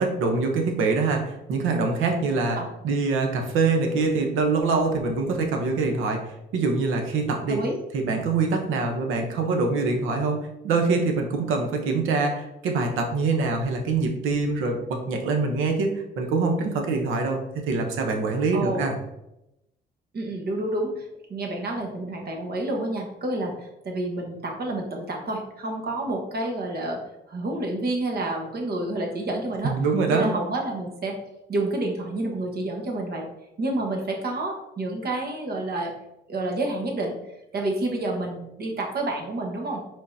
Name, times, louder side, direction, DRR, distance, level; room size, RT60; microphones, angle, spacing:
voice 1, 0.0-2.6 2.8-7.6 7.9-19.0 29.6-30.3, right 4 dB, 85° right, 3 dB, 0.9 m, -24 dB
voice 2, 18.5-18.9 20.1-27.0 27.3-29.7 30.1-31.2 31.5-33.3 33.6-35.9 36.3-37.1 37.5-39.8, right 2 dB, 50° right, 1 dB, 1.3 m, -29 dB
5.3 x 3.7 x 2.7 m, 0.88 s
cardioid pair, 90°, 20 cm